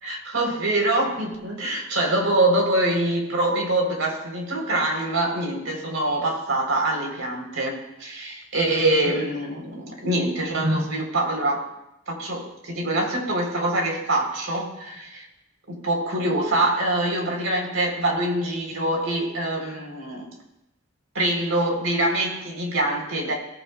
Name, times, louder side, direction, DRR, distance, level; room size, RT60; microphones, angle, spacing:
voice 1, 0.0-11.7 12.1-15.3 15.7-20.3 21.2-23.3, right 1 dB, 85° right, 1 dB, 3.4 m, -24 dB
17.5 x 14.5 x 2.2 m, 0.87 s
head